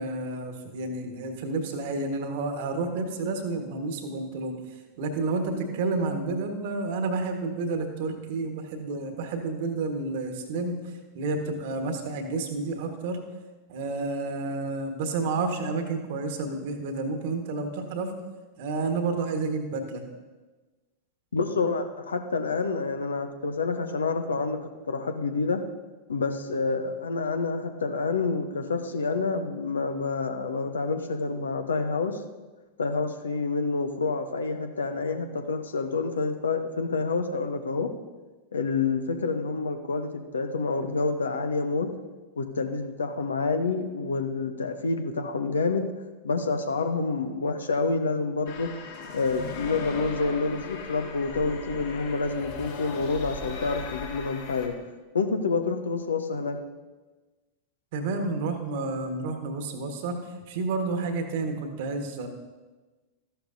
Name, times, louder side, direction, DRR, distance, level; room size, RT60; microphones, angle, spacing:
voice 1, 0.0-4.5 5.0-10.8 11.1-13.2 13.7-18.1 18.6-20.0 57.9-62.3, right 3 dB, 50° right, 5 dB, 1.5 m, -30 dB
voice 2, 21.3-24.6 24.9-25.6 26.1-32.2 32.8-37.9 38.5-41.9 42.4-45.9 46.2-48.7 49.1-54.7 55.1-56.6, left 4 dB, 70° left, 7 dB, 0.9 m, -28 dB
sound 1, 48.5-54.7, left 4 dB, 55° left, 1.9 m, -38 dB
14.0 x 11.5 x 2.7 m, 1.2 s
figure-of-eight pair, 90°, 0 cm